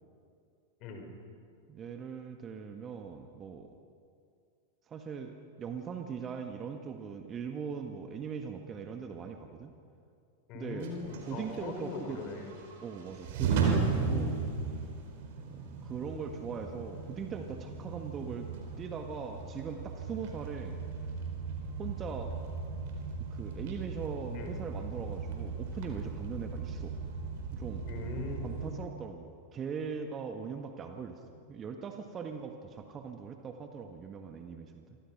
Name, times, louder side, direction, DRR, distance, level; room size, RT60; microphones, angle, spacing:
voice 1, 0.8-1.1 10.5-12.5 24.3-24.6 27.9-28.6, left 3 dB, 40° left, 4 dB, 5.1 m, -40 dB
voice 2, 1.7-3.7 4.9-9.7 10.5-10.9 11.3-12.2 12.8-14.5 15.5-18.5 18.8-20.8 21.8-22.6 23.3-27.0 27.5-27.8 28.4-31.2 31.5-35.0, right 6 dB, 25° right, 5 dB, 1.7 m, -40 dB
sound 1, 10.8-28.7, right 4 dB, 50° right, 4.5 m, -36 dB
28.0 x 24.5 x 6.0 m, 2.4 s
figure-of-eight pair, 90°, 0 cm